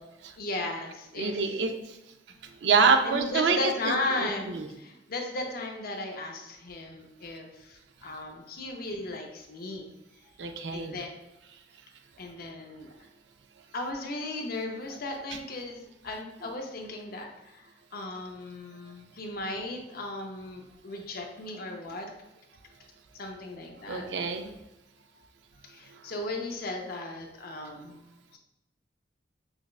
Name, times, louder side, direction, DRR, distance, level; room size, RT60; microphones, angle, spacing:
voice 1, 0.4-1.6 2.3-2.4 3.0-9.9 10.7-11.1 12.2-12.9 13.7-22.1 23.1-24.1 25.2-25.3 25.6-28.0, left 2 dB, 55° left, 2 dB, 0.6 m, -36 dB
voice 2, 1.2-2.0 2.6-3.9 4.2-4.7 10.4-11.0 23.9-24.5, right 5 dB, 75° right, 6 dB, 0.4 m, -26 dB
5.7 x 2.2 x 2.3 m, 0.96 s
head